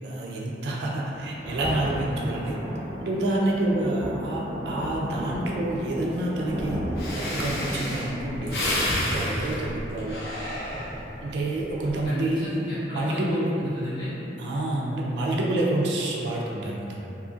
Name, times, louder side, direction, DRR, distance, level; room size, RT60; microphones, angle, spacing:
voice 1, 0.0-2.6 3.0-6.8 7.1-8.6 9.1-10.2 11.2-12.4 12.9-13.5 14.4-17.0, right 1 dB, 70° right, -3 dB, 0.3 m, -28 dB
Thunder, 1.2-12.1 12.7-12.8, equal, ahead, 0.4 m, -35 dB
Breathing, 6.7-6.8 7.0-11.2 11.7-12.0, left 1 dB, 65° left, 0.6 m, -30 dB
voice 2, 12.0-14.1, left 1 dB, 30° left, -13 dB, 0.8 m, -32 dB
2.7 x 2.5 x 2.4 m, 2.9 s
head